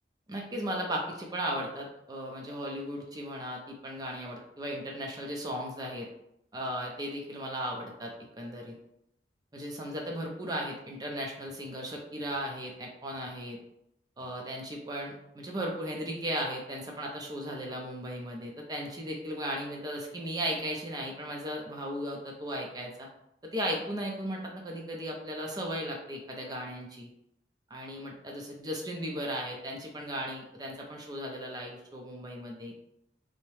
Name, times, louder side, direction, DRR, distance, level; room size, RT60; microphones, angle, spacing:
voice 1, 0.3-6.1 6.5-8.7 9.5-13.6 14.2-23.1 23.5-27.1 27.7-32.7, equal, 20° right, 0 dB, 0.5 m, -36 dB
2.7 x 2.1 x 3.1 m, 0.79 s
head